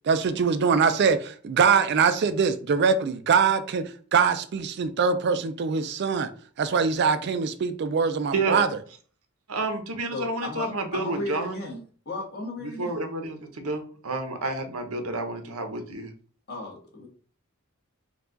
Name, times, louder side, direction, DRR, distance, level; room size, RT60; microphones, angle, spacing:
voice 1, 0.1-3.8 4.1-6.3 6.6-8.7, right 5 dB, 50° right, 10 dB, 0.4 m, -23 dB
voice 2, 8.3-8.6 9.5-11.6 12.6-16.1, right 3 dB, 85° right, 7 dB, 0.8 m, -30 dB
voice 3, 10.1-11.8 12.0-13.0 16.5-17.1, left 2 dB, 50° left, 0 dB, 1.4 m, -35 dB
4.6 x 2.3 x 3.8 m, 0.43 s
head